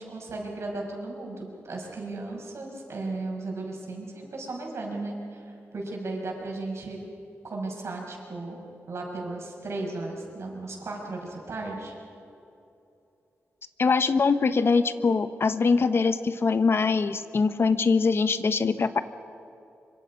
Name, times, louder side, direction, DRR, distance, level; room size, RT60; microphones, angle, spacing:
voice 1, 0.0-5.4 5.7-7.0 7.4-8.6 8.9-11.9, right 2 dB, 65° right, 0 dB, 5.9 m, -35 dB
voice 2, 13.8-19.0, left 4 dB, 55° left, 11 dB, 1.1 m, -23 dB
25.0 x 25.0 x 5.4 m, 2.7 s
cardioid pair, 85°, 5 cm